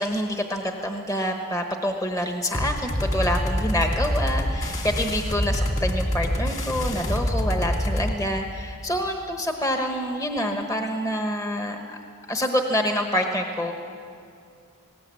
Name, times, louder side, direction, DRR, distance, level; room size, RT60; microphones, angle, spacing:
voice 1, 0.0-12.0 12.3-13.7, equal, 15° left, 3 dB, 1.1 m, -27 dB
sound 1, 2.5-8.2, equal, 30° left, 2.3 m, -26 dB
19.5 x 17.5 x 8.5 m, 2.5 s
head